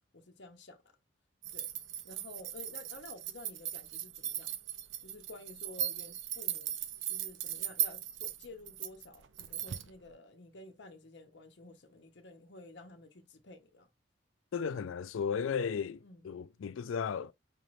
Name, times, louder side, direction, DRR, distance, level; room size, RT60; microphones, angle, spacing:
voice 1, 0.1-0.8 1.5-1.7 2.0-4.6 5.0-6.7 7.1-13.9 16.0-16.3, left 2 dB, 60° left, 0.7 m, -52 dB
sound 1, 1.4-9.9, right 11 dB, 70° right, 0.5 m, -38 dB
voice 2, 14.5-16.0 16.2-17.3, left 6 dB, 80° left, 0.4 m, -34 dB
5.2 x 3.1 x 2.5 m
head